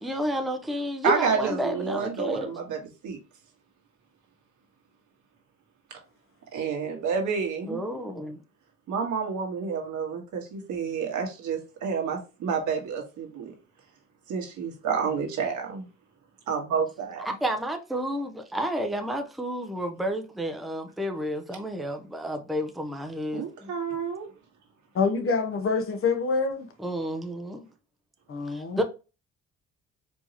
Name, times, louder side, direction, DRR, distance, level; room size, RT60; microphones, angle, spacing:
voice 1, 0.0-2.5 7.7-8.4 17.2-23.7 26.8-27.7 28.5-28.8, equal, ahead, 0.6 m, -31 dB
voice 2, 1.0-3.2 6.5-7.8 8.9-13.5 14.3-15.8 16.5-17.3 23.3-24.3, right 6 dB, 75° right, 1.4 m, -29 dB
voice 3, 24.9-26.7 28.3-28.8, left 4 dB, 45° left, 0.9 m, -26 dB
4.5 x 2.8 x 2.9 m
cardioid pair, 90°, 30 cm